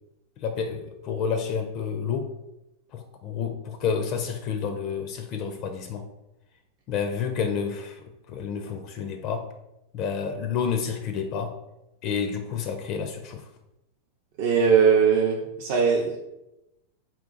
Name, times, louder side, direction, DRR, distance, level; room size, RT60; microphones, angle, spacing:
voice 1, 0.4-2.3 2.9-6.0 6.9-8.0 8.3-9.4 9.9-11.5 12.0-13.4, left 6 dB, 40° left, 5 dB, 0.4 m, -29 dB
voice 2, 14.4-16.2, right 6 dB, 50° right, 0 dB, 0.5 m, -20 dB
3.7 x 2.4 x 3.7 m, 0.91 s
figure-of-eight pair, 90°, 0 cm